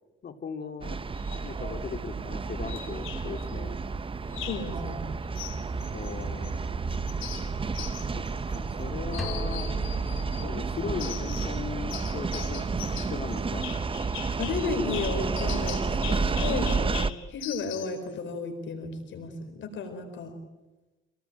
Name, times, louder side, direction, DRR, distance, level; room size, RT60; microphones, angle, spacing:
voice 1, 0.2-1.0 1.4-3.8 5.9-6.7 8.1-9.7 10.4-13.7, left 6 dB, 50° left, 7 dB, 2.5 m, -38 dB
sound 1, 0.8-17.1, right 4 dB, 25° right, 0.8 m, -31 dB
sound 2, 1.1-1.5 2.7-3.5 4.3-4.7 5.3-6.6 6.9-8.8 9.1-10.5 11.0-11.6 11.9-18.0, left 12 dB, 90° left, 3.6 m, -41 dB
voice 2, 4.3-5.0 14.4-20.3, left 4 dB, 70° left, 5 dB, 4.4 m, -34 dB
sound 3, 9.2-11.2, left 1 dB, ahead, 4.8 m, -40 dB
26.5 x 18.5 x 9.2 m, 1.1 s
cardioid pair, 90°, 20 cm